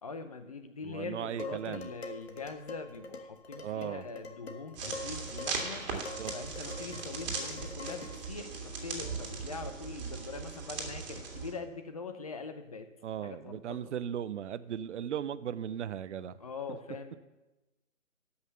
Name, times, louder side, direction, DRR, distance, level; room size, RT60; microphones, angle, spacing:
voice 1, 0.0-5.9 6.3-12.9 13.2-13.8 16.4-17.2, left 4 dB, 30° left, 9 dB, 0.6 m, -43 dB
voice 2, 0.8-1.9 3.6-4.0 5.8-6.4 13.0-16.4, right 9 dB, 60° right, 16 dB, 0.5 m, -37 dB
Dishes pots and pans, 1.4-8.3, left 3 dB, 50° left, 1.2 m, -45 dB
sound 1, 4.7-11.5, right 4 dB, 30° right, 2.1 m, -39 dB
12.5 x 5.7 x 6.8 m, 1.1 s
hypercardioid pair, 155°, 40 cm